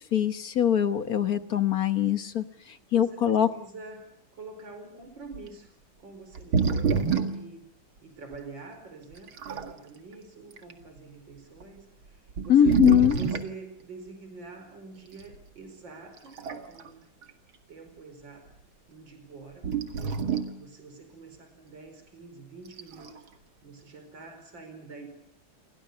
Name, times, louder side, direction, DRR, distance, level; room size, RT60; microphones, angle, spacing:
voice 1, 0.0-3.5 12.5-13.2, left 10 dB, 50° left, 10 dB, 1.5 m, -23 dB
voice 2, 2.9-7.7 8.0-16.4 16.7-17.0 17.7-18.5 18.9-19.7 20.0-20.2 20.6-23.3 23.6-25.1, right 4 dB, 65° right, 7 dB, 5.4 m, -46 dB
sound 1, 5.3-5.5 6.3-7.5 8.3-8.4 9.1-9.8 10.5-10.7 11.6-11.7 12.3-13.6 15.2-15.4 16.2-16.9 17.2-17.3 19.6-20.6 22.7-23.2, right 6 dB, 80° right, 2.8 m, -28 dB
29.5 x 23.5 x 7.0 m, 0.67 s
omnidirectional pair, 2.2 m